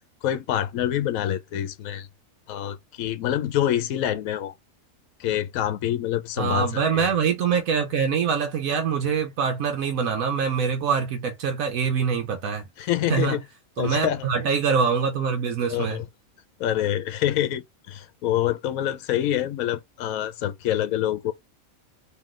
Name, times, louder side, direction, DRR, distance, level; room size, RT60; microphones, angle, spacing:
voice 1, 0.2-2.1 2.5-4.5 5.2-6.7 6.9-7.1 12.8-13.4 13.8-14.3 15.7-16.1 16.6-21.3, left 11 dB, 75° left, 1.1 m, -26 dB
voice 2, 6.4-12.7 13.1-13.4 13.8-16.0, right 6 dB, 75° right, 1.2 m, -24 dB
3.8 x 3.0 x 3.0 m
omnidirectional pair, 1.5 m